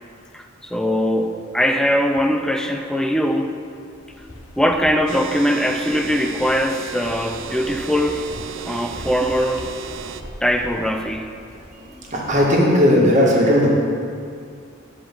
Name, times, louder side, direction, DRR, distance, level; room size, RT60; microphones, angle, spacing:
voice 1, 0.3-3.6 4.6-8.3 8.7-9.7 10.4-11.3, equal, 5° left, 5 dB, 0.5 m, -21 dB
sound 1, 3.9-12.5, equal, 85° left, 1.3 m, -41 dB
sound 2, 5.1-10.2, right 7 dB, 70° right, 0.5 m, -34 dB
voice 2, 11.7-13.7, equal, 40° right, -3 dB, 1.8 m, -17 dB
10.0 x 5.1 x 7.3 m, 2.3 s
head